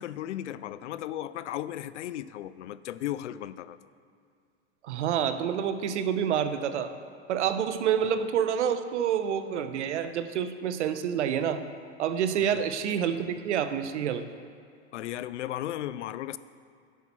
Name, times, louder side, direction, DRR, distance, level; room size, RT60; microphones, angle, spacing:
voice 1, 0.0-3.8 12.4-12.6 14.9-16.4, left 12 dB, 85° left, 16 dB, 0.5 m, -35 dB
voice 2, 4.8-6.9 7.3-11.6 12.0-14.2, right 8 dB, 85° right, 10 dB, 0.8 m, -28 dB
11.0 x 8.3 x 4.3 m, 2.4 s
hypercardioid pair, 110°, 34 cm